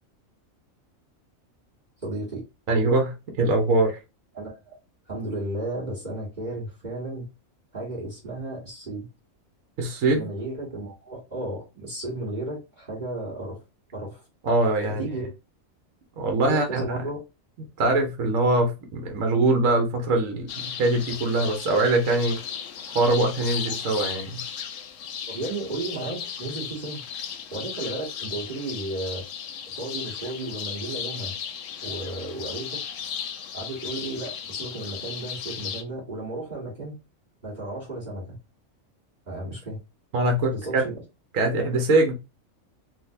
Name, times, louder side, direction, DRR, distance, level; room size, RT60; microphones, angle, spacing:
voice 1, 2.0-2.4 4.3-4.8 5.1-7.3 7.7-9.1 10.1-13.6 13.9-14.3 14.9-15.3 16.5-17.2 25.3-27.0 27.5-29.2 29.7-31.3 31.8-32.8 33.5-37.0 37.4-38.4 39.2-39.8 40.5-41.0, right 2 dB, 35° right, -4 dB, 1.4 m, -33 dB
voice 2, 2.7-4.0 9.8-10.3 14.4-15.0 16.2-16.8 17.8-22.4 22.9-24.4 40.1-40.8 41.3-42.2, right 2 dB, 75° right, 4 dB, 1.2 m, -23 dB
sound 1, 20.5-35.8, left 7 dB, 75° left, 0.9 m, -35 dB
3.6 x 2.6 x 2.5 m, 0.27 s
omnidirectional pair, 1.4 m